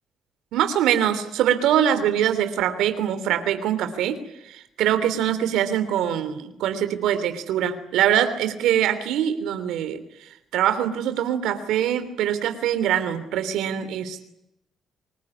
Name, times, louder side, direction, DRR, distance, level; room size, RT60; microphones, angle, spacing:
voice 1, 0.5-4.2 4.4-14.2, right 10 dB, 90° right, 10 dB, 3.1 m, -23 dB
25.0 x 21.0 x 9.8 m, 0.84 s
cardioid pair, 90°, 0 cm